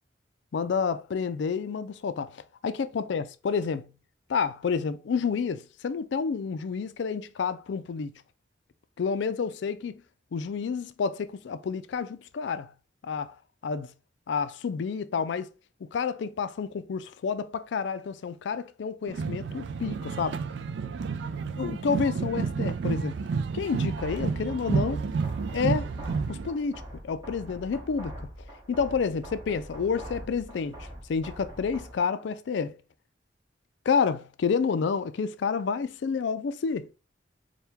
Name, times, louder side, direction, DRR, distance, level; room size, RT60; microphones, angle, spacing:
voice 1, 0.5-3.9 4.3-8.2 9.0-10.0 10.3-12.7 13.0-13.4 13.6-13.9 14.3-15.5 15.9-20.4 21.5-23.2 23.5-25.0 25.5-25.9 26.3-28.3 28.7-32.8 33.9-36.9, left 5 dB, 65° left, 0.4 m, -29 dB
sound 1, 19.1-26.5, right 5 dB, 65° right, 0.3 m, -30 dB
sound 2, 24.0-32.0, equal, 20° right, 1.1 m, -43 dB
4.5 x 2.2 x 3.4 m
head